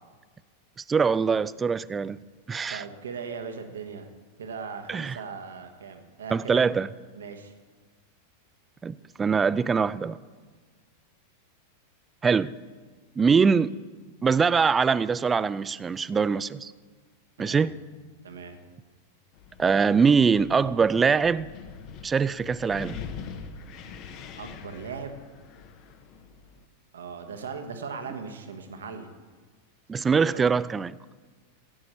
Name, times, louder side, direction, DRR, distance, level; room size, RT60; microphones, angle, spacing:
voice 1, 0.9-2.2 2.5-2.8 4.9-5.2 6.3-6.9 8.8-10.2 12.2-12.5 13.2-13.7 14.2-16.7 17.4-17.7 19.6-21.5 22.0-23.0 29.9-31.0, right 5 dB, 15° right, 0.3 m, -23 dB
voice 2, 2.7-4.1 4.4-6.7 7.1-7.5 17.4-17.7 18.2-18.6 24.4-25.2 26.9-29.1 30.1-30.4, right 5 dB, 65° right, 1.2 m, -38 dB
Wind, 19.3-26.7, left 6 dB, 40° left, 0.9 m, -43 dB
15.5 x 8.8 x 4.3 m
figure-of-eight pair, 90°, 0 cm